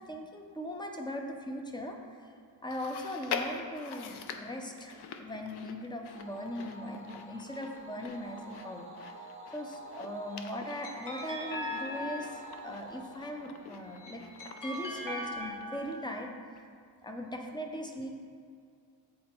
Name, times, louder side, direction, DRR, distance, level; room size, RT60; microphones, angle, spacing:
voice 1, 0.0-2.3 2.6-8.8 9.5-14.3 14.6-16.7 17.0-18.1, left 1 dB, 10° left, 3 dB, 0.4 m, -39 dB
Chewing mastication, 2.7-16.2 16.6-16.7 17.5-17.6, left 6 dB, 60° left, 0.6 m, -45 dB
sound 1, 6.1-14.7, right 1 dB, 30° right, 0.6 m, -49 dB
sound 2, 10.1-12.8 13.7-16.2, left 1 dB, 45° left, 1.0 m, -40 dB
7.7 x 4.2 x 4.3 m, 2.2 s
cardioid pair, 160°, 45 cm